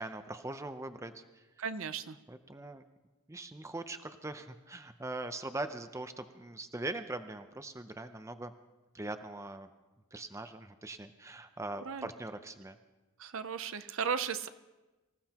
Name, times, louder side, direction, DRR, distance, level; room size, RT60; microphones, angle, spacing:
voice 1, 0.0-1.4 2.3-2.8 3.3-8.5 8.9-9.7 10.1-12.8, right 2 dB, 15° right, 9 dB, 0.6 m, -41 dB
voice 2, 1.6-2.2 11.9-12.1 13.2-14.5, right 6 dB, 65° right, 12 dB, 0.6 m, -35 dB
25.0 x 15.5 x 2.9 m, 1.1 s
head